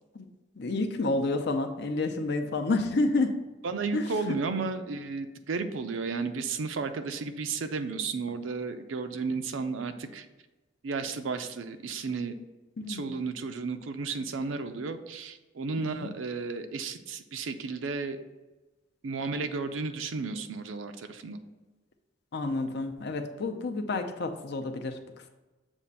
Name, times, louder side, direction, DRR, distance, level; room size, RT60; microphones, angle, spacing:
voice 1, 0.6-3.3 3.9-4.0 12.8-13.2 15.8-16.1 22.3-25.0, left 2 dB, 60° left, 5 dB, 0.6 m, -29 dB
voice 2, 3.6-10.3 10.8-12.3 12.9-18.2 19.0-21.4, right 4 dB, 90° right, 8 dB, 0.5 m, -33 dB
7.1 x 2.5 x 5.3 m, 1.1 s
head